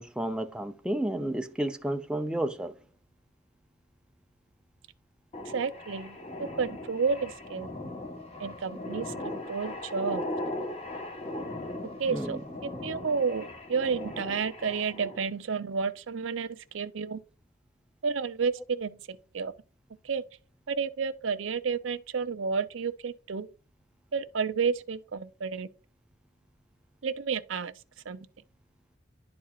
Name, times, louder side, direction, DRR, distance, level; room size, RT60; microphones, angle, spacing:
voice 1, 0.0-2.8 12.1-12.4, right 1 dB, 5° right, 0.5 m, -31 dB
sound 1, 5.3-15.2, left 1 dB, 30° left, 1.2 m, -38 dB
voice 2, 5.5-6.2 6.6-7.7 8.4-10.2 12.0-17.2 18.0-19.5 20.0-20.2 20.7-23.5 24.1-25.7 27.0-27.7 28.1-28.3, right 5 dB, 85° right, 0.6 m, -31 dB
11.0 x 4.3 x 2.4 m
head